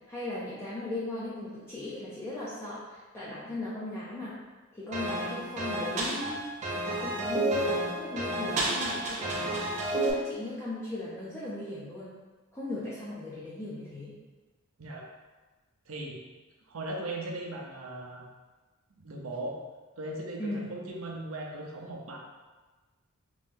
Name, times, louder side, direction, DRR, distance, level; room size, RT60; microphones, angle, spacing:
voice 1, 0.1-4.4 4.7-12.1 12.5-14.1 20.4-20.7, left 2 dB, 10° left, -9 dB, 0.5 m, -38 dB
sound 1, 4.9-10.1, right 1 dB, 35° right, 0.6 m, -30 dB
voice 2, 15.9-16.2 16.7-18.2 19.0-19.6 20.0-22.2, right 1 dB, 70° right, 0 dB, 0.6 m, -38 dB
3.0 x 2.7 x 3.5 m, 1.3 s
head